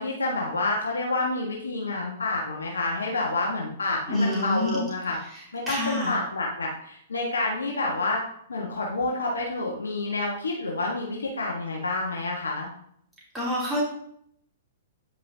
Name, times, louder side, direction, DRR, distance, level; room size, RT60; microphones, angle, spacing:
voice 1, 0.0-5.2 5.5-8.2 8.5-12.7, left 2 dB, 85° left, -1 dB, 1.3 m, -28 dB
voice 2, 4.1-4.8 5.2-6.1 13.3-13.8, left 1 dB, 10° right, -7 dB, 2.9 m, -28 dB
9.3 x 5.5 x 2.7 m, 0.69 s
hypercardioid pair, 115°, 0 cm